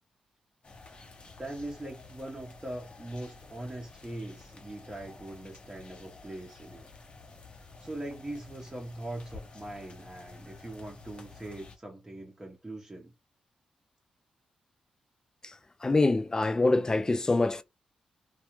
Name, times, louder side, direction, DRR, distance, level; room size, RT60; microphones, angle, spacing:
sound 1, 0.6-11.8, left 3 dB, 45° left, 0.9 m, -51 dB
voice 1, 1.4-6.9 7.8-13.1, right 1 dB, 20° right, 0.8 m, -41 dB
voice 2, 15.8-17.6, left 2 dB, 25° left, 0.4 m, -25 dB
2.4 x 2.3 x 2.9 m
cardioid pair, 60°, 3 cm